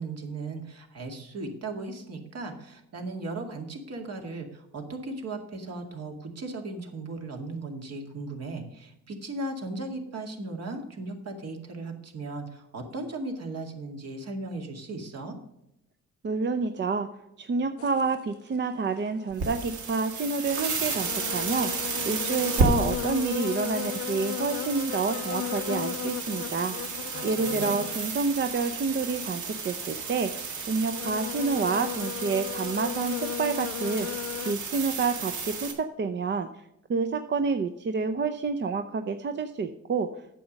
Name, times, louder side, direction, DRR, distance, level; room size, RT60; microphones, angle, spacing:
voice 1, 0.0-15.4 27.1-27.9, right 2 dB, 55° right, 3 dB, 2.2 m, -37 dB
voice 2, 16.2-17.1 17.4-26.7 27.2-36.5 36.9-40.1, right 4 dB, 40° right, 8 dB, 0.6 m, -28 dB
sound 1, 17.8-18.2 19.8-19.9 20.5-20.6 21.0-28.3 28.6-28.7 29.3-30.2 30.8-34.5, left 12 dB, 50° left, 0.4 m, -36 dB
sound 2, 19.3-35.7, right 4 dB, 75° right, 2.1 m, -33 dB
9.2 x 7.1 x 5.2 m, 0.83 s
cardioid pair, 90°, 30 cm